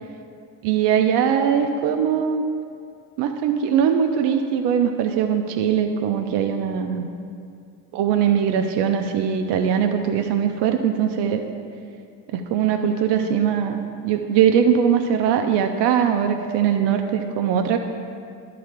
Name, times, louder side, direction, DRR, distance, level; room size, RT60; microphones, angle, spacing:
voice 1, 0.6-2.4 3.2-7.1 7.9-11.4 12.3-17.8, right 8 dB, 60° right, 5 dB, 0.7 m, -21 dB
11.0 x 3.8 x 6.7 m, 2.4 s
hypercardioid pair, 50°, 47 cm